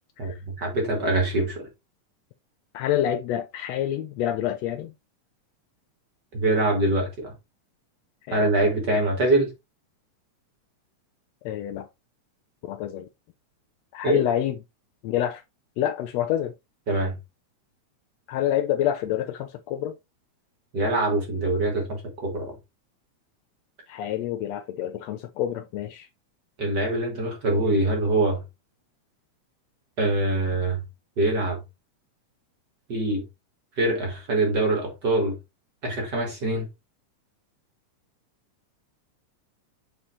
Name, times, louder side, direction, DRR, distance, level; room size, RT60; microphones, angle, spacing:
voice 1, 0.2-1.7 6.3-7.3 8.3-9.5 14.0-14.2 16.9-17.1 20.7-22.5 26.6-28.4 30.0-30.8 31.2-31.6 32.9-33.2 33.8-35.4 35.8-36.7, right 2 dB, 45° right, 1.6 m, -24 dB
voice 2, 2.7-4.9 8.3-8.4 11.4-11.9 12.6-13.1 13.9-14.6 15.0-15.4 15.8-16.5 18.3-19.9 23.9-26.1, left 11 dB, 75° left, 1.7 m, -27 dB
7.1 x 4.9 x 3.0 m
omnidirectional pair, 3.4 m